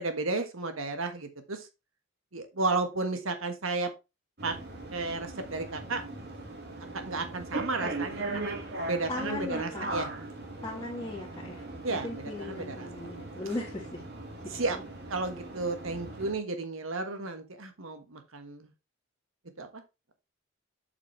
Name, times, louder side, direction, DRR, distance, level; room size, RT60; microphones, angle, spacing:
voice 1, 0.0-1.7 2.3-3.9 4.4-4.6 4.9-6.3 6.9-10.1 11.8-12.9 14.5-14.8 15.1-18.7 19.6-19.8, right 3 dB, 70° right, 7 dB, 1.4 m, -33 dB
sound 1, 4.4-16.3, right 2 dB, 50° right, 2.0 m, -39 dB
voice 2, 9.1-9.8 10.6-11.6 11.9-14.0, left 2 dB, 15° left, -6 dB, 1.6 m, -37 dB
7.3 x 5.9 x 3.2 m, 0.25 s
head